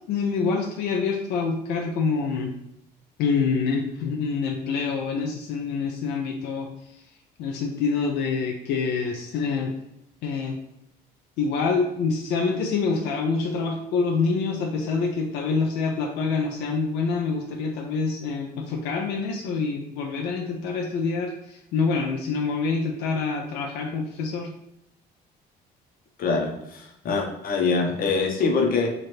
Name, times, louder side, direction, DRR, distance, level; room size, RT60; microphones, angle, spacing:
voice 1, 0.1-2.5 3.2-6.7 7.4-9.7 10.2-10.5 11.4-24.5, left 4 dB, 90° left, 1 dB, 0.5 m, -26 dB
voice 2, 26.2-28.9, left 4 dB, 60° left, 1 dB, 0.9 m, -24 dB
3.3 x 2.5 x 4.2 m, 0.79 s
cardioid pair, 110°, 17 cm